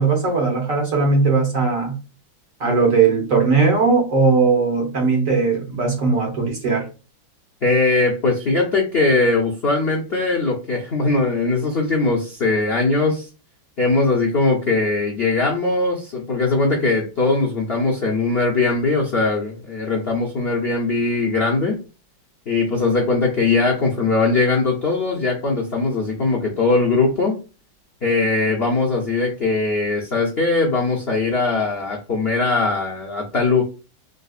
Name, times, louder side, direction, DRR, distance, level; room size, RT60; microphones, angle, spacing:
voice 1, 0.0-2.0 2.6-6.9, right 4 dB, 50° right, 1.2 m, -18 dB
voice 2, 7.6-13.3 13.8-21.8 22.5-27.4 28.0-33.6, left 3 dB, 85° left, 0.5 m, -20 dB
3.7 x 2.6 x 2.4 m
omnidirectional pair, 2.1 m